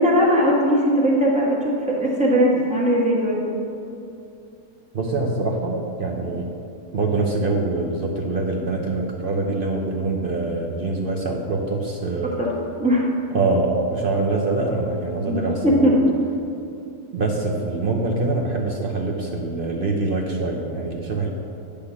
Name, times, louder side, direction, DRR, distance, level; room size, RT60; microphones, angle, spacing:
voice 1, 0.0-3.4 12.2-12.5 12.8-13.1 15.2-16.0, equal, 5° right, -5 dB, 1.3 m, -19 dB
voice 2, 4.9-6.5 6.9-12.4 13.3-16.0 17.1-21.3, right 3 dB, 50° right, 0 dB, 0.7 m, -24 dB
9.7 x 3.5 x 7.0 m, 2.6 s
omnidirectional pair, 1.7 m